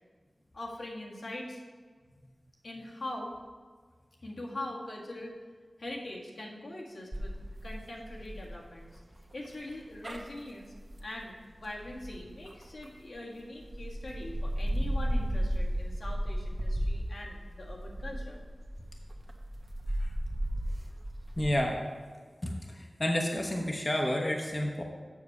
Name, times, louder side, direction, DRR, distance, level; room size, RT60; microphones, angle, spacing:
voice 1, 0.5-1.6 2.6-3.3 4.2-5.3 5.8-7.3 7.6-8.9 9.3-10.7 11.0-18.4, left 1 dB, 80° left, -3 dB, 1.7 m, -42 dB
sound 1, 7.1-13.1 13.6-21.5, equal, 40° right, 1.0 m, -35 dB
voice 2, 21.4-21.8 22.4-22.5 23.0-24.8, left 1 dB, 30° left, 1 dB, 0.9 m, -29 dB
7.3 x 6.1 x 6.6 m, 1.5 s
wide cardioid pair, 80°, 0 cm